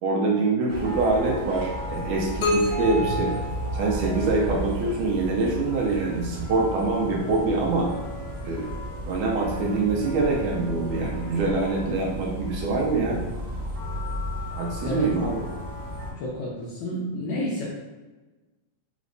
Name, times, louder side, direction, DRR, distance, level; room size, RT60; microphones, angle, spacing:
voice 1, 0.0-3.3 3.7-7.9 8.4-8.7 9.1-13.2 14.6-15.4, right 3 dB, 80° right, -2 dB, 1.9 m, -25 dB
sound 1, 0.7-16.1, equal, 60° right, 0.6 m, -33 dB
sound 2, 2.4-4.3, left 1 dB, 60° left, 1.8 m, -28 dB
voice 2, 16.2-17.6, left 1 dB, 80° left, -5 dB, 1.7 m, -30 dB
5.1 x 3.1 x 2.5 m, 1.2 s
omnidirectional pair, 3.8 m